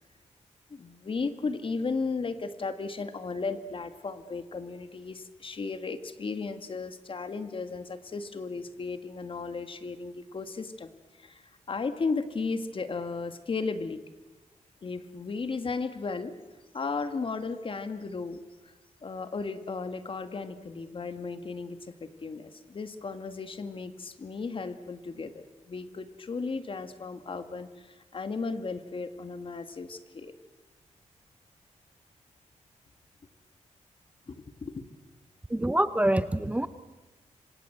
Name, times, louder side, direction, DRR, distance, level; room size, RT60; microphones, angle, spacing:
voice 1, 0.7-10.9 11.2-14.0 14.8-16.3 16.7-18.7 19.0-30.4 34.3-34.9, left 4 dB, 45° left, 10 dB, 2.0 m, -35 dB
voice 2, 35.5-36.7, right 1 dB, 10° right, 12 dB, 1.0 m, -25 dB
26.5 x 26.0 x 8.0 m, 1.1 s
cardioid pair, 100°, 13 cm